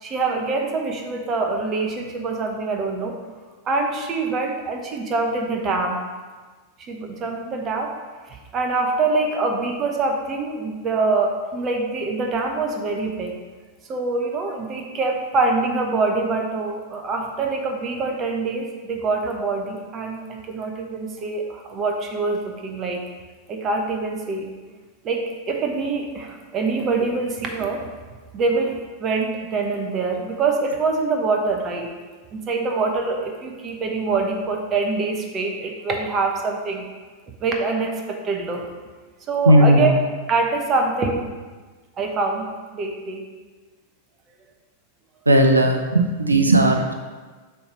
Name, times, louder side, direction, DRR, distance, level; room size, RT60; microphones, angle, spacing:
voice 1, 0.0-3.2 3.6-6.0 6.9-7.9 8.2-13.3 13.9-23.0 23.5-24.5 25.0-27.9 28.3-31.9 32.3-36.8 37.4-38.7 39.3-39.9 40.3-41.2 42.0-43.2, right 3 dB, 30° right, 2 dB, 1.0 m, -24 dB
voice 2, 39.5-39.9 45.3-46.9, right 1 dB, 80° right, 4 dB, 0.6 m, -16 dB
6.8 x 3.4 x 5.6 m, 1.4 s
figure-of-eight pair, 90°, 0 cm